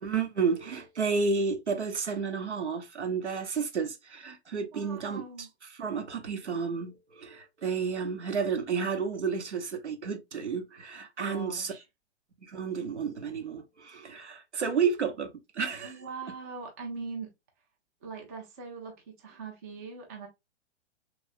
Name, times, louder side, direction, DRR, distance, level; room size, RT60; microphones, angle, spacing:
voice 1, 0.0-5.5 5.7-11.7 12.4-15.9, right 5 dB, 75° right, 0.8 m, -31 dB
voice 2, 4.7-5.5 11.2-11.8 15.8-17.3 18.0-20.3, right 4 dB, 15° right, 0.3 m, -41 dB
3.1 x 3.1 x 2.4 m
figure-of-eight pair, 115°, 34 cm